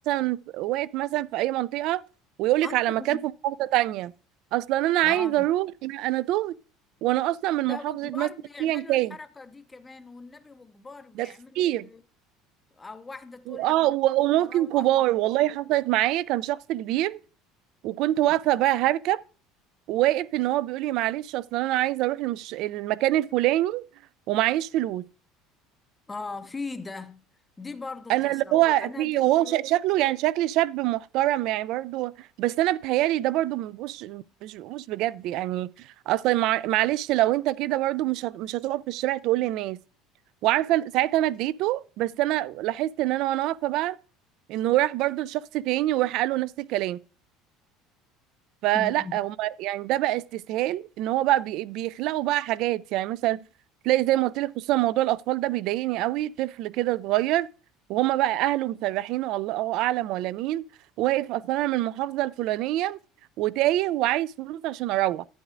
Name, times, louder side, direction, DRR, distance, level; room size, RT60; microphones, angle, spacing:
voice 1, 0.1-2.0 2.4-3.2 3.4-4.1 4.5-6.6 7.0-8.3 8.6-9.1 11.2-11.3 11.6-11.9 13.5-17.2 17.8-19.2 19.9-23.8 24.3-25.1 28.1-39.8 40.4-44.0 44.5-47.0 48.6-53.5 53.8-57.5 57.9-60.6 61.0-63.0 63.4-65.3, right 15 dB, 50° right, 0.3 m, -25 dB
voice 2, 2.6-3.3 5.0-5.5 7.6-12.0 12.8-13.9 14.4-15.1 26.1-27.2 27.6-29.7 48.7-49.2, left 3 dB, 10° left, 0.5 m, -40 dB
11.0 x 9.2 x 2.5 m
cardioid pair, 170°, 0 cm